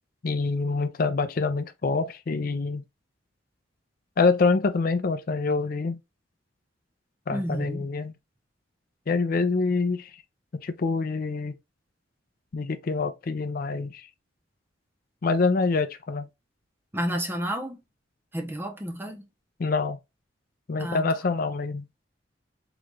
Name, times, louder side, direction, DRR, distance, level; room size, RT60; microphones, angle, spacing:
voice 1, 0.2-2.8 4.2-6.0 7.3-8.1 9.1-10.1 10.6-11.5 12.5-14.1 15.2-16.3 19.6-20.0 20.7-21.9, left 4 dB, 50° left, 0.4 m, -26 dB
voice 2, 7.3-7.9 16.9-17.8 18.3-19.3 20.8-21.1, equal, 10° right, 0.6 m, -31 dB
3.9 x 2.3 x 3.2 m
head